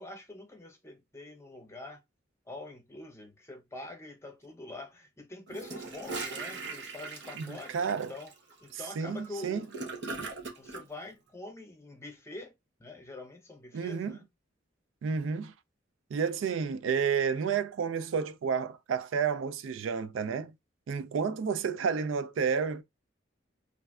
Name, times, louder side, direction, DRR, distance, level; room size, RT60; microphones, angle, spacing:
voice 1, 0.0-2.0 2.5-8.3 8.6-10.0 10.6-12.5 12.8-14.2, left 2 dB, 15° left, 0.6 m, -45 dB
Gurgling / Toilet flush, 5.5-10.8, right 3 dB, 65° right, 0.8 m, -40 dB
voice 2, 7.5-8.1 8.7-9.6 13.7-14.2 15.0-15.5 16.1-20.5 20.9-22.8, right 6 dB, 85° right, 0.4 m, -31 dB
3.1 x 2.5 x 2.3 m
head